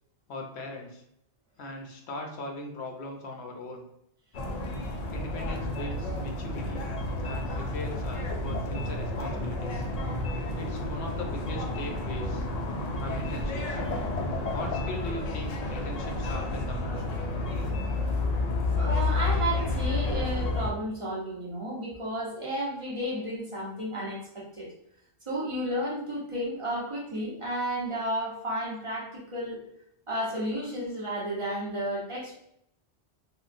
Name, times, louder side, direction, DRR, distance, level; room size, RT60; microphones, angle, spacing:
voice 1, 0.3-1.0 1.6-3.9 5.1-6.9 7.2-9.9 10.6-12.5 13.0-13.8 14.5-17.2, left 2 dB, 80° left, 2 dB, 0.9 m, -39 dB
sound 1, 4.3-20.7, left 2 dB, 55° left, 0.5 m, -30 dB
voice 2, 18.8-24.7 25.3-29.6 30.1-32.3, right 1 dB, 35° right, -6 dB, 0.7 m, -32 dB
3.6 x 2.1 x 2.5 m, 0.73 s
omnidirectional pair, 1.1 m